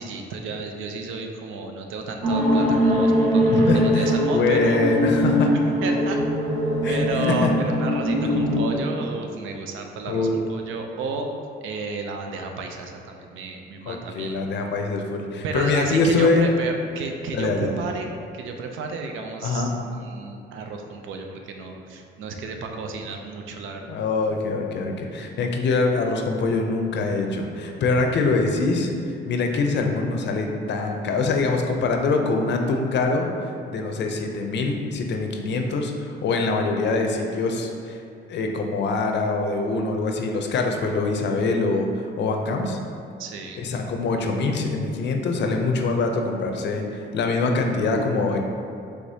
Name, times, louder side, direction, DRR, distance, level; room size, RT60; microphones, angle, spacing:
voice 1, 0.0-4.9 5.7-6.2 6.8-11.3 11.6-14.4 15.4-18.1 18.3-19.7 20.0-24.0 43.2-43.6, right 3 dB, 80° right, 3 dB, 0.5 m, -32 dB
sound 1, 2.2-8.6, equal, 35° right, 1.3 m, -21 dB
voice 2, 3.5-5.5 6.8-7.5 10.1-10.4 13.9-16.5 17.3-17.8 19.4-19.7 23.9-33.3 33.7-38.0 38.3-42.8 43.6-48.4, left 3 dB, 60° left, 3 dB, 0.5 m, -24 dB
4.8 x 3.3 x 2.7 m, 2.5 s
cardioid pair, 90°, 20 cm